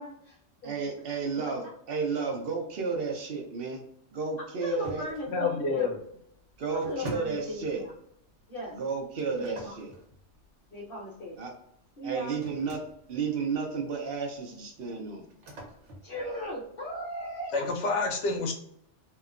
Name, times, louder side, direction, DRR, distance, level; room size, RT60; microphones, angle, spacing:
voice 1, 0.0-0.7 1.1-1.5 4.6-5.9 6.8-7.9 8.5-8.8 9.4-9.8 10.7-11.4 12.0-12.4 16.0-17.7, left 1 dB, 50° left, -8 dB, 1.2 m, -38 dB
voice 2, 0.6-3.8 4.1-5.1 6.6-7.8 8.7-9.9 11.4-11.5 12.0-12.8 13.1-15.2, right 5 dB, 60° right, 1 dB, 0.8 m, -32 dB
sound 1, 4.8-17.4, right 1 dB, 80° right, 1.1 m, -48 dB
voice 3, 5.3-6.0 17.5-18.5, left 3 dB, 80° left, 2 dB, 1.0 m, -28 dB
2.8 x 2.2 x 2.4 m, 0.72 s
omnidirectional pair, 1.2 m